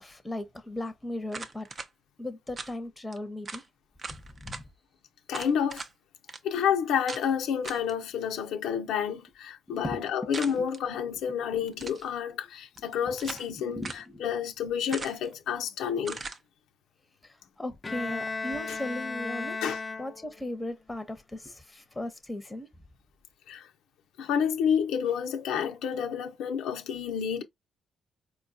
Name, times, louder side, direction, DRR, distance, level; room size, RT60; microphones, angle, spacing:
voice 1, 0.0-1.7 2.2-3.6 4.3-4.6 9.7-10.7 11.3-11.4 13.0-14.3 16.0-16.1 17.2-19.6 20.0-22.7, left 1 dB, 15° left, 0.8 m, -38 dB
sound 1, 1.3-1.9 2.6-2.7 3.1-3.2 3.5-3.7 4.0-4.6 5.3-5.9 6.3-6.4 7.1-7.3 7.6-7.9 10.3-10.8 11.7-12.1 12.8-13.5 13.8-14.1 14.9-15.3 16.0-16.4, right 3 dB, 35° right, 0.6 m, -40 dB
voice 2, 5.3-5.8 6.4-13.8 14.2-16.3 18.7-18.8 19.6-19.8 23.5-23.7 24.2-27.4, left 8 dB, 85° left, 0.6 m, -29 dB
Bowed string instrument, 17.8-20.6, left 3 dB, 30° left, 0.4 m, -35 dB
4.4 x 2.3 x 2.6 m
cardioid pair, 90°, 0 cm